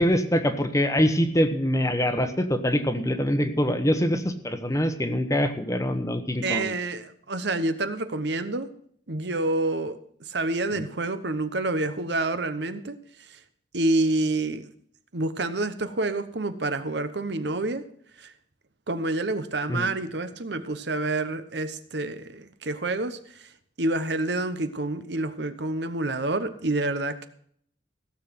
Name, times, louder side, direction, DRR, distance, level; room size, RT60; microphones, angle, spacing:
voice 1, 0.0-6.7 10.8-10.9 19.7-19.9, equal, 15° left, 8 dB, 1.1 m, -24 dB
voice 2, 6.4-8.7 9.1-10.0 10.3-13.0 13.7-14.7 15.1-17.8 18.2-18.3 18.9-23.2 23.8-27.3, right 2 dB, 60° right, 11 dB, 1.0 m, -28 dB
16.0 x 7.2 x 6.0 m, 0.63 s
head